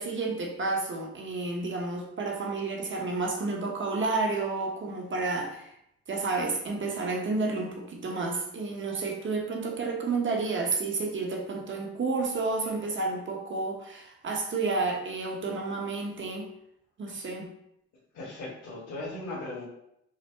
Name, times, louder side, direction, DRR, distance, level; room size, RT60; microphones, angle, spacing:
voice 1, 0.0-5.7 6.1-16.5 17.0-17.5, right 3 dB, 40° right, 1 dB, 1.0 m, -30 dB
voice 2, 18.1-19.6, left 2 dB, 55° left, -8 dB, 1.6 m, -37 dB
5.8 x 2.2 x 3.4 m, 0.78 s
cardioid pair, 90°, 30 cm